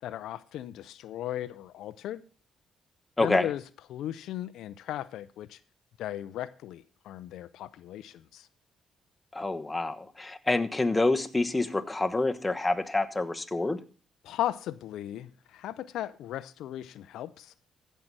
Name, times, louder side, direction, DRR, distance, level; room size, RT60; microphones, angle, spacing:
voice 1, 0.0-2.2 3.2-3.6 3.9-5.6 6.0-8.5 14.2-17.5, left 12 dB, 80° left, 0.5 m, -36 dB
voice 2, 3.2-3.5 9.3-13.8, left 2 dB, 15° left, 1.1 m, -27 dB
15.0 x 5.6 x 6.1 m
cardioid pair, 90°, 0 cm